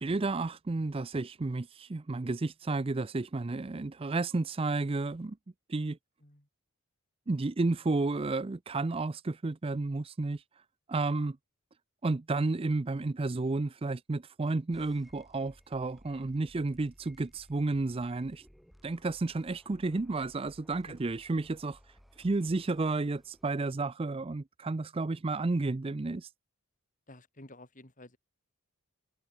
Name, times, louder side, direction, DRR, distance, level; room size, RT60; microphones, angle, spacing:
voice 1, 0.0-5.4 5.7-6.0 7.3-10.4 10.9-11.4 12.0-18.4 18.8-21.8 22.2-26.3, right 3 dB, 25° right, 0.5 m, -32 dB
sound 1, 14.7-23.7, equal, ahead, 6.0 m, -60 dB
voice 2, 27.1-28.2, left 1 dB, 40° left, 4.2 m, -51 dB
head